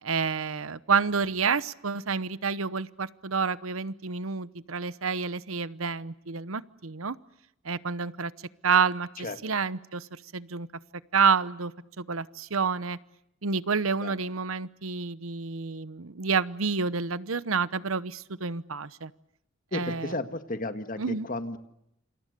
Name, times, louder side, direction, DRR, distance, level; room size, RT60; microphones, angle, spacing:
voice 1, 0.0-7.2 7.6-8.3 8.6-10.7 11.1-11.7 12.0-13.0 13.4-19.1 19.7-20.1 21.0-21.3, right 5 dB, 85° right, 17 dB, 1.0 m, -29 dB
voice 2, 19.7-21.6, left 2 dB, 40° left, 9 dB, 1.9 m, -33 dB
28.0 x 27.0 x 6.8 m, 0.79 s
head